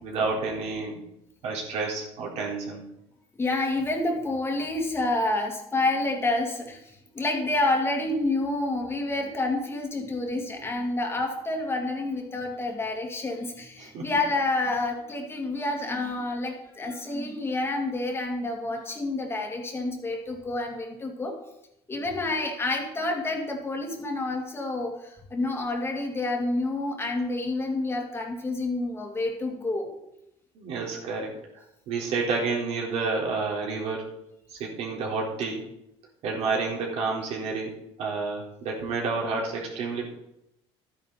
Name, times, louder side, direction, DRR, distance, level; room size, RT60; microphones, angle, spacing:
voice 1, 0.0-1.0 1.4-2.8 13.8-14.1 30.6-31.4 31.9-34.1 34.5-35.7 36.2-40.2, right 4 dB, 65° right, -2 dB, 4.0 m, -30 dB
voice 2, 3.4-6.8 7.1-21.3 21.9-24.9 25.3-29.9, left 2 dB, 20° left, 1 dB, 2.4 m, -28 dB
12.5 x 10.0 x 4.1 m, 0.82 s
cardioid pair, 120°, 12 cm